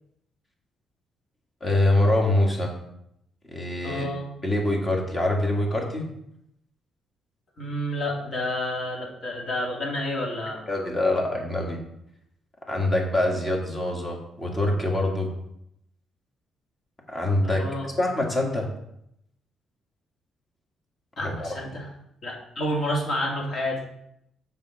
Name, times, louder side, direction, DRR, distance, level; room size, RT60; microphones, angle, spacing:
voice 1, 1.6-2.7 3.5-4.1 4.4-6.1 10.7-11.8 12.7-15.3 17.1-18.7 21.2-21.5, left 1 dB, 30° left, 0 dB, 2.2 m, -24 dB
voice 2, 3.8-4.3 7.6-10.6 17.4-17.9 21.2-21.9 22.2-23.8, left 1 dB, 55° left, -2 dB, 2.5 m, -29 dB
7.3 x 5.7 x 4.4 m, 0.78 s
cardioid pair, 90°, 0 cm